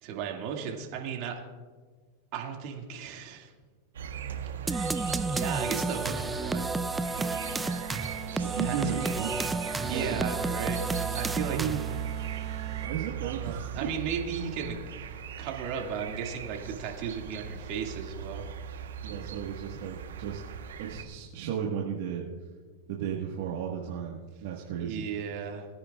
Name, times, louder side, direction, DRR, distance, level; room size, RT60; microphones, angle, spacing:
voice 1, 0.0-1.4 2.3-3.5 5.1-6.7 8.6-9.2 9.8-10.8 11.1-11.6 13.2-18.5 24.8-25.7, right 7 dB, 55° right, 1 dB, 2.1 m, -35 dB
sound 1, 3.9-21.0, right 9 dB, 90° right, 1.1 m, -38 dB
sound 2, 4.7-12.1, right 3 dB, 10° right, 0.4 m, -31 dB
sound 3, 7.2-13.1, right 9 dB, 35° right, 0.8 m, -43 dB
voice 2, 8.4-9.3 9.9-10.2 11.5-11.9 12.8-13.9 14.3-14.4 19.0-20.4 20.8-22.3 22.9-25.1, right 8 dB, 70° right, -2 dB, 1.4 m, -34 dB
21.5 x 9.9 x 2.4 m, 1.5 s
supercardioid pair, 125°, 0 cm